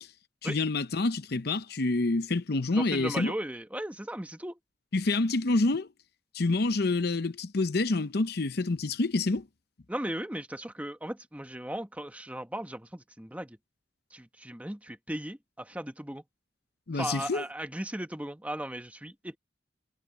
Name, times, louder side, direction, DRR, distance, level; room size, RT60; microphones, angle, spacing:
voice 1, 0.4-3.3 4.9-5.9 6.3-9.5 16.9-17.4, left 3 dB, 55° left, 0.7 m, -27 dB
voice 2, 2.7-4.6 9.9-13.6 14.1-16.2 16.9-19.4, right 1 dB, 10° right, 1.2 m, -37 dB
head